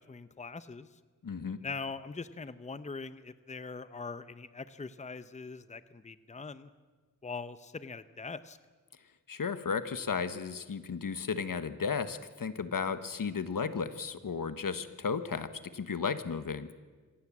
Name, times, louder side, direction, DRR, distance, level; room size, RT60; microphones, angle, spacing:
voice 1, 0.1-0.9 1.6-6.7 7.2-8.6, left 4 dB, 20° left, 13 dB, 0.7 m, -42 dB
voice 2, 1.2-1.6 9.3-16.7, left 5 dB, 75° left, 12 dB, 1.3 m, -34 dB
25.5 x 17.5 x 7.3 m, 1.4 s
wide cardioid pair, 105°, 33 cm